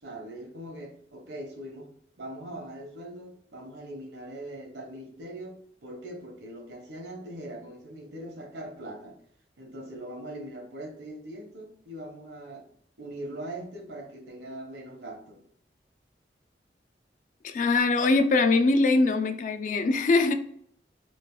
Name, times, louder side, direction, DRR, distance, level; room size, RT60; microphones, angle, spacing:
voice 1, 0.0-1.9 2.2-9.2 9.6-12.7 13.0-15.4, right 1 dB, 75° right, 0.9 m, -41 dB
voice 2, 17.4-20.3, left 3 dB, 45° left, 0.3 m, -22 dB
3.1 x 2.4 x 3.7 m
head